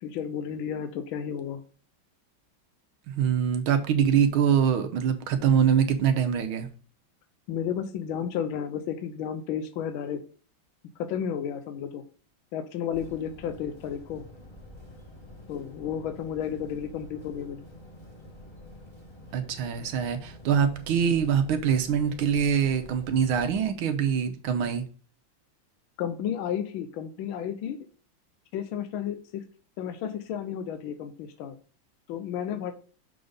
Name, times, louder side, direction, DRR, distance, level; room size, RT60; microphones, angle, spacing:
voice 1, 0.0-1.6 7.5-10.2 11.0-12.0 12.5-14.2 15.5-17.6 26.0-27.8 28.5-29.4 29.8-31.6 32.1-32.7, left 8 dB, 85° left, 8 dB, 1.4 m, -32 dB
voice 2, 3.1-6.7 19.3-24.9, right 8 dB, 85° right, 7 dB, 1.7 m, -24 dB
sound 1, 12.9-23.6, left 1 dB, 15° left, 1.2 m, -47 dB
6.7 x 4.0 x 5.0 m, 0.39 s
omnidirectional pair, 2.2 m